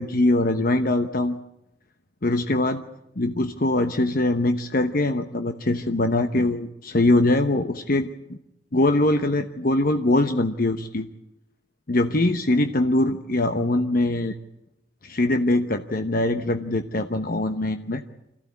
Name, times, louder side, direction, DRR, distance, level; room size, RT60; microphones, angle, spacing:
voice 1, 0.0-1.4 2.2-2.8 3.2-8.4 8.7-11.1 11.9-14.3 15.0-18.0, left 2 dB, 55° left, 8 dB, 1.1 m, -22 dB
26.0 x 15.0 x 9.6 m, 0.86 s
head